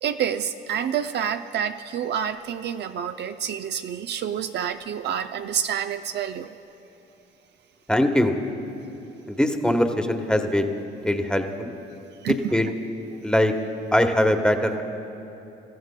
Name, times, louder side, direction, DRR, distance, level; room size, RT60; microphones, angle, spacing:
voice 1, 0.0-6.5 12.2-12.6, right 8 dB, 55° right, 8 dB, 0.4 m, -28 dB
voice 2, 7.9-8.4 9.3-10.7 11.0-11.7 12.5-12.7 13.2-13.5 13.9-14.8, left 1 dB, 5° left, 5 dB, 1.1 m, -21 dB
28.5 x 14.0 x 2.2 m, 3.0 s
supercardioid pair, 70°, 21 cm